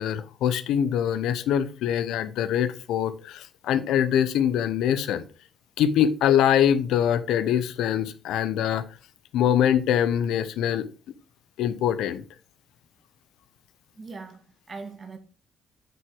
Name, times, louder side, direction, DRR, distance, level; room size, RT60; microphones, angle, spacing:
voice 1, 0.0-5.2 5.8-8.8 9.3-10.9 11.6-12.2, left 9 dB, 85° left, 0.8 m, -23 dB
voice 2, 13.9-15.2, right 4 dB, 35° right, 2.2 m, -41 dB
9.3 x 4.8 x 4.7 m
cardioid pair, 90°, 0 cm